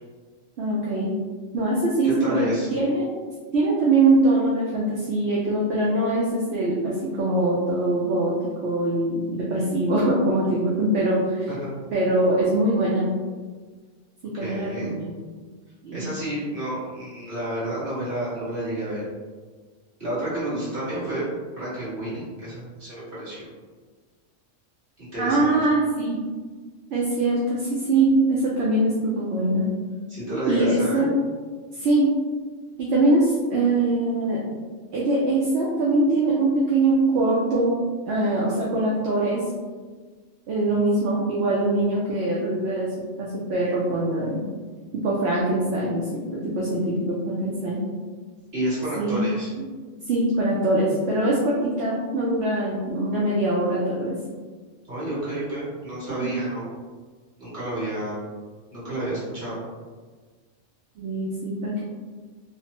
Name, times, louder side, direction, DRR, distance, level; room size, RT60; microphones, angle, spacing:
voice 1, 0.6-1.2 1.5-3.1 3.5-8.4 8.6-11.5 11.9-13.1 14.2-15.1 15.8-16.1 25.2-26.2 26.9-29.7 30.5-31.1 31.7-32.1 32.8-34.4 34.9-37.7 38.1-39.4 40.5-44.4 44.9-47.8 49.0-49.3 50.0-54.2 56.2-56.4 61.0-61.8, right 2 dB, 65° right, -5 dB, 0.8 m, -23 dB
voice 2, 2.0-2.7 11.5-11.7 14.3-14.9 15.9-19.0 20.0-21.2 21.6-23.4 25.0-25.5 30.1-31.1 48.5-49.5 54.9-56.7 57.4-58.2 58.7-59.5, right 1 dB, 40° right, -11 dB, 1.5 m, -30 dB
3.2 x 2.0 x 2.8 m, 1.4 s
omnidirectional pair, 1.3 m